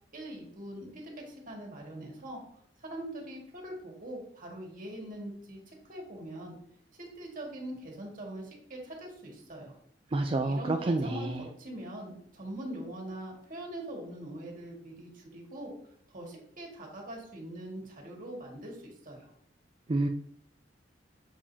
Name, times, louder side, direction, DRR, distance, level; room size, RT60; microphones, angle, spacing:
voice 1, 0.1-2.4 2.8-6.6 7.0-9.8 10.4-19.3, right 1 dB, 45° right, -1 dB, 1.9 m, -42 dB
voice 2, 10.1-11.4 19.9-20.1, right 2 dB, 30° right, 5 dB, 0.4 m, -29 dB
7.3 x 5.0 x 2.8 m, 0.66 s
head